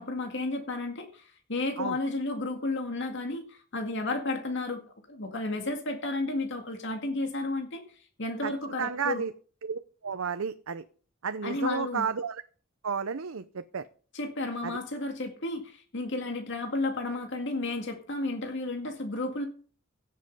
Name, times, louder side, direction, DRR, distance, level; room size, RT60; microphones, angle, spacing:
voice 1, 0.0-4.8 5.1-9.2 11.4-12.0 14.1-19.5, left 2 dB, 60° left, 4 dB, 2.0 m, -32 dB
voice 2, 8.8-9.3 9.6-10.8 11.2-12.4 12.8-13.8 14.6-14.8, right 6 dB, 80° right, 11 dB, 0.7 m, -32 dB
17.0 x 7.6 x 5.4 m, 0.41 s
head